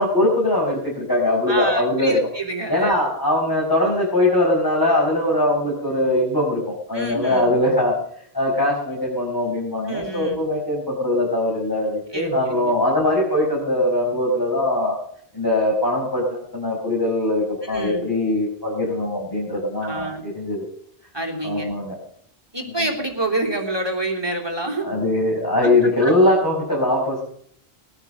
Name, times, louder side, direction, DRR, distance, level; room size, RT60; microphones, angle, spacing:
voice 1, 0.0-2.2 2.7-7.9 8.3-15.0 15.3-20.6 21.4-22.0 24.8-27.2, left 1 dB, 20° left, -4 dB, 4.9 m, -21 dB
voice 2, 1.5-3.0 6.9-7.5 9.8-10.4 12.1-12.7 17.7-18.1 19.8-20.2 21.1-21.7 22.5-24.9 25.6-25.7 26.0-26.1, right 2 dB, 25° right, -1 dB, 3.2 m, -27 dB
20.0 x 9.7 x 6.9 m, 0.64 s
omnidirectional pair, 1.0 m